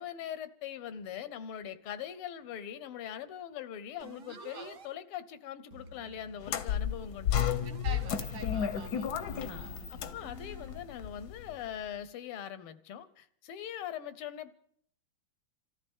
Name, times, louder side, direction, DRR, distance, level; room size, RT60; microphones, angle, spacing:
voice 1, 0.0-7.4 9.4-14.5, left 9 dB, 80° left, 1.7 m, -42 dB
sound 1, 4.0-4.9 5.7-8.3 9.1-10.8, right 4 dB, 50° right, 1.0 m, -52 dB
voice 2, 4.3-4.7 7.7-10.2, right 6 dB, 80° right, 2.7 m, -47 dB
sound 2, 6.4-11.7, left 9 dB, 60° left, 1.1 m, -33 dB
27.5 x 14.0 x 3.6 m
omnidirectional pair, 2.4 m